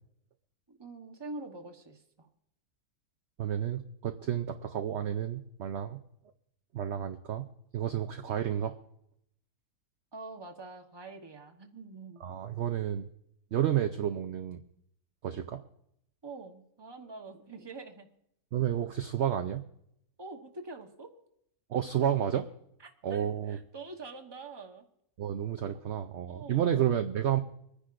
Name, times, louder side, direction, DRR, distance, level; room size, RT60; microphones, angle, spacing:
voice 1, 0.7-2.3 10.1-12.2 16.2-18.1 20.2-21.2 22.8-24.9 26.3-26.8, right 3 dB, 20° right, 3 dB, 1.0 m, -45 dB
voice 2, 3.4-6.0 6.7-7.4 7.7-8.8 12.2-13.1 13.5-14.6 15.2-15.6 18.5-19.6 21.7-22.4 23.0-23.6 25.2-27.4, right 10 dB, 60° right, 6 dB, 0.7 m, -31 dB
25.0 x 10.0 x 2.5 m, 0.75 s
omnidirectional pair, 1.7 m